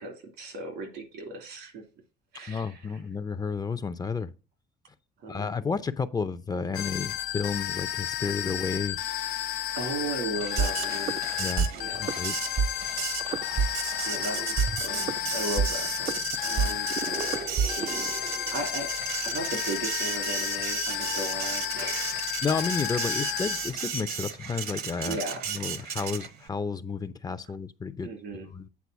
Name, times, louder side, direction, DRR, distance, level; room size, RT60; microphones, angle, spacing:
voice 1, 0.0-1.8 2.3-2.8 5.2-5.6 9.7-11.2 11.7-12.1 14.0-16.9 17.6-18.0 18.5-18.9 19.2-22.2 25.1-25.5 28.0-28.5, right 2 dB, 85° right, 2.8 m, -36 dB
voice 2, 2.5-4.3 5.3-9.0 11.4-11.7 12.0-12.3 22.4-25.2 25.5-28.1 28.5-28.7, left 5 dB, 20° left, 0.5 m, -31 dB
sound 1, 6.7-23.9, left 12 dB, 75° left, 0.6 m, -32 dB
Printer, 10.4-26.5, right 7 dB, 65° right, 1.1 m, -35 dB
sound 2, 10.6-11.7 11.9-12.2 12.6-12.7 13.2-14.2 14.6-18.6, right 6 dB, 35° right, 0.5 m, -29 dB
8.4 x 3.9 x 6.1 m
cardioid pair, 110°, 17 cm